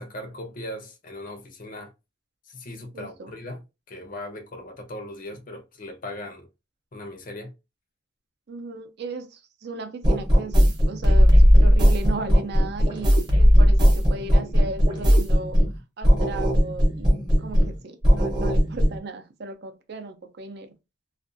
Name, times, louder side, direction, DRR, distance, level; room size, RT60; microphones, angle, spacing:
voice 1, 0.0-1.9 2.5-6.5 6.9-7.5, left 1 dB, 45° left, 0.6 m, -38 dB
voice 2, 2.9-3.3 8.5-15.6 16.0-20.7, right 3 dB, 60° right, 0.5 m, -36 dB
sound 1, 10.0-15.8 16.0-17.8 18.0-19.0, equal, 25° right, 0.7 m, -18 dB
2.4 x 2.2 x 2.5 m
head